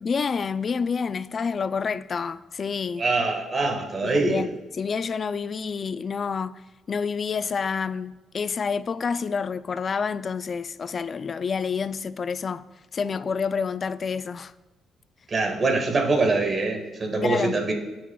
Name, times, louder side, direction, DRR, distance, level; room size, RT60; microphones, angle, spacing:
voice 1, 0.0-3.0 4.0-4.5 4.8-6.6 6.9-12.6 12.9-14.5 17.2-17.6, left 5 dB, 45° left, 0.3 m, -28 dB
voice 2, 3.0-4.4 15.3-17.7, right 3 dB, 40° right, 1.5 m, -24 dB
15.0 x 6.1 x 2.3 m
cardioid pair, 90°, 0 cm